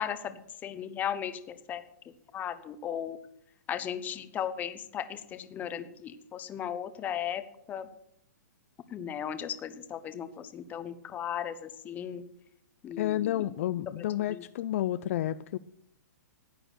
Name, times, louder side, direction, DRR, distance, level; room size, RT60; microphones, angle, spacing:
voice 1, 0.0-1.8 2.3-3.2 3.7-7.4 7.7-7.9 8.9-12.2 12.8-13.3 14.0-14.4, left 9 dB, 15° left, 11 dB, 0.9 m, -36 dB
voice 2, 13.0-15.6, left 13 dB, 50° left, 14 dB, 0.4 m, -30 dB
14.5 x 9.0 x 6.3 m, 0.75 s
hypercardioid pair, 150°, 10 cm